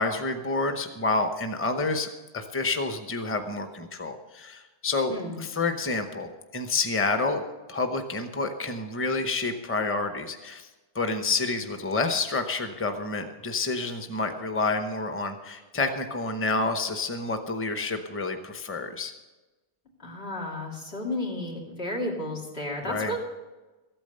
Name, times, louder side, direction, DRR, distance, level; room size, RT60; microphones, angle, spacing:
voice 1, 0.0-2.1 2.3-7.4 7.7-10.7 10.9-19.1 22.9-23.2, left 3 dB, 15° left, 6 dB, 0.8 m, -29 dB
voice 2, 5.1-5.4 20.0-23.2, left 1 dB, 85° left, -2 dB, 3.0 m, -32 dB
14.0 x 8.9 x 6.7 m, 1.1 s
omnidirectional pair, 1.1 m